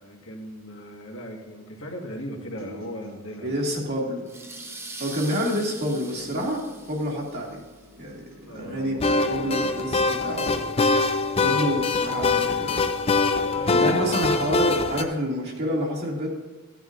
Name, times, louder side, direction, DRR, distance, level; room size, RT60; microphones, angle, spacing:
voice 1, 0.0-3.5 8.4-9.8 13.4-14.2, equal, 75° left, 0 dB, 1.8 m, -38 dB
sound 1, 2.6-10.6, right 1 dB, 90° right, 2.7 m, -48 dB
voice 2, 3.4-4.3 5.0-6.6 6.9-7.6 8.0-10.7 11.4-12.9 13.7-16.3, equal, 50° right, -2 dB, 2.2 m, -28 dB
sound 2, 4.3-7.7, right 3 dB, 10° right, 0.6 m, -42 dB
sound 3, 9.0-15.0, left 3 dB, 30° left, 0.5 m, -23 dB
14.5 x 9.6 x 2.6 m, 1.3 s
head